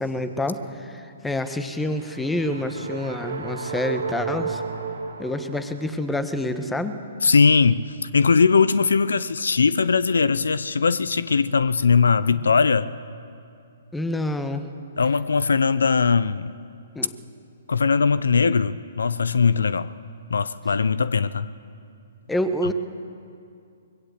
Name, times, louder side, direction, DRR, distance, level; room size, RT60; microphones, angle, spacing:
voice 1, 0.0-4.6 5.2-7.1 13.9-14.7 16.9-17.1 22.3-22.7, left 1 dB, 5° left, 10 dB, 1.2 m, -27 dB
sound 1, 1.7-6.1, right 5 dB, 80° right, 2.9 m, -33 dB
voice 2, 7.2-12.9 15.0-16.5 17.7-19.9 20.3-21.5, left 5 dB, 80° left, 16 dB, 0.6 m, -20 dB
21.0 x 16.0 x 8.0 m, 2.5 s
hypercardioid pair, 130°, 0 cm